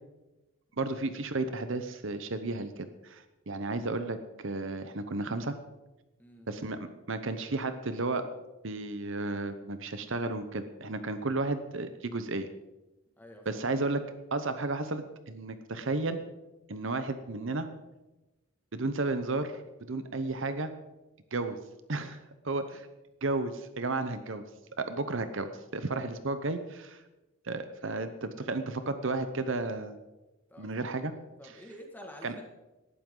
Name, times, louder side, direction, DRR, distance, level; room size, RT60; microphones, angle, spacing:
voice 1, 0.8-5.5 6.5-8.3 8.6-12.5 13.5-14.0 14.3-16.2 16.7-17.7 18.7-19.6 19.9-20.7 21.3-21.6 21.9-22.2 22.4-22.9 23.2-24.4 24.8-27.0 27.4-30.0 30.6-31.1 31.4-31.6 32.2-32.4, right 3 dB, 60° right, 10 dB, 0.8 m, -33 dB
voice 2, 13.2-13.6 22.7-22.8 30.5-31.1 31.4-32.4, equal, 10° left, 1 dB, 1.9 m, -49 dB
18.5 x 12.0 x 3.9 m, 1.0 s
head